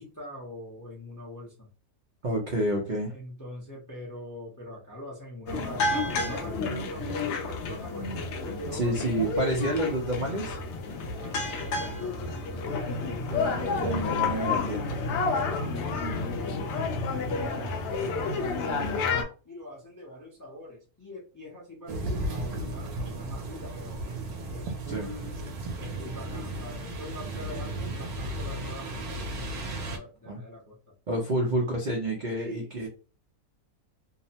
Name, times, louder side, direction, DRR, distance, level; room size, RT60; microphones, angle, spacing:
voice 1, 0.0-1.7 3.1-8.9 11.2-14.6 15.2-24.0 24.5-25.4 25.8-30.8 31.3-31.5 32.3-32.8, left 1 dB, 20° left, -4 dB, 0.5 m, -44 dB
voice 2, 2.2-3.1 8.7-10.6 13.3-15.0 24.9-25.1 30.3-30.4 31.1-32.9, right 1 dB, 55° right, -2 dB, 0.5 m, -29 dB
sound 1, 5.5-19.2, left 3 dB, 65° left, 0.7 m, -30 dB
sound 2, 21.9-30.0, right 1 dB, 75° right, 1.1 m, -35 dB
2.8 x 2.1 x 2.8 m, 0.35 s
omnidirectional pair, 1.6 m